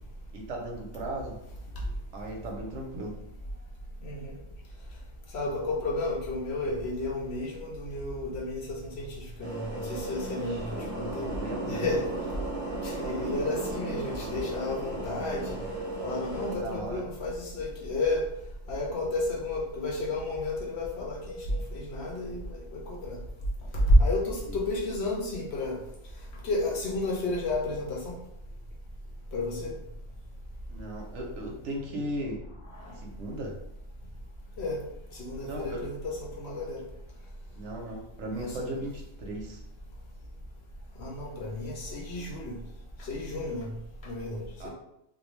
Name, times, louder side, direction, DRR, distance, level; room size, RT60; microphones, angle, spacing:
voice 1, 0.3-1.4 2.1-3.2 11.3-11.8 16.5-17.0 24.5-24.6 30.7-32.4 33.0-33.6 35.5-35.8 37.6-39.6 44.6-44.7, right 1 dB, 70° right, 0 dB, 0.8 m, -36 dB
voice 2, 4.0-4.4 5.3-11.3 11.7-12.1 12.8-15.6 16.0-18.2 18.7-23.2 23.7-25.8 26.4-28.2 29.3-29.7 32.7-33.0 34.6-34.9 35.1-36.8 38.4-38.8 41.0-42.6 43.0-43.7 44.0-44.7, left 1 dB, 65° left, -2 dB, 0.8 m, -31 dB
sound 1, 9.4-16.6, right 2 dB, 30° right, 0.7 m, -35 dB
2.5 x 2.1 x 3.0 m, 0.81 s
omnidirectional pair, 1.3 m